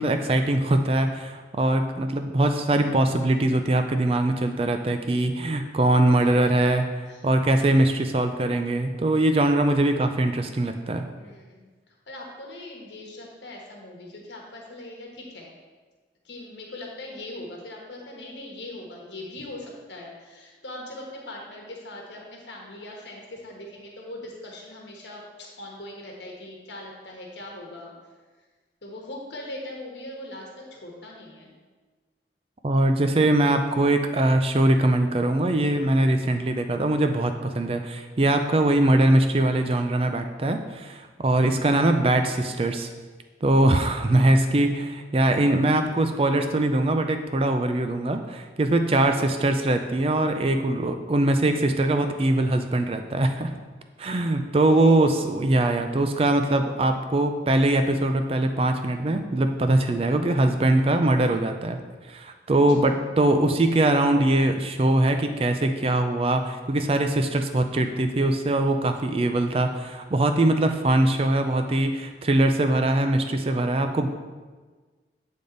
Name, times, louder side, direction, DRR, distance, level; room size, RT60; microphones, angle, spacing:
voice 1, 0.0-6.9 7.2-11.0 32.6-42.9 43.4-53.5 54.0-61.8 62.1-74.1, right 1 dB, 30° right, 7 dB, 0.4 m, -22 dB
voice 2, 6.2-6.8 7.1-7.3 11.2-15.5 16.2-27.9 28.8-31.5 41.4-41.8 44.1-44.6 48.9-49.3 54.7-55.1, left 1 dB, 85° left, -1 dB, 1.2 m, -41 dB
8.4 x 3.5 x 3.9 m, 1.4 s
head